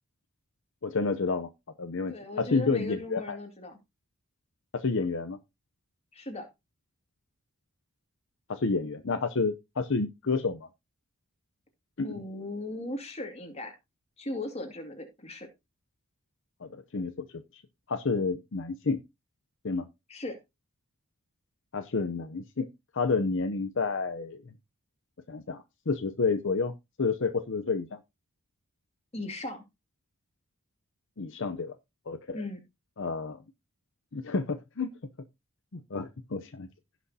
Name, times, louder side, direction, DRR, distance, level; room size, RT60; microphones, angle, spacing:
voice 1, 0.8-1.5 1.8-3.4 4.7-5.4 8.5-10.7 12.0-12.2 16.6-17.3 17.5-17.6 17.9-19.0 19.6-19.9 21.7-22.7 22.9-24.4 25.3-26.7 27.0-27.9 31.2-31.8 32.1-32.4 33.0-33.4 34.1-34.9 35.7-36.7, left 4 dB, 55° left, 0.7 m, -30 dB
voice 2, 2.1-3.8 6.1-6.5 12.0-13.7 14.2-15.5 20.1-20.4 29.1-29.6 32.3-32.6, left 2 dB, 30° left, 2.3 m, -37 dB
16.5 x 6.2 x 2.8 m
head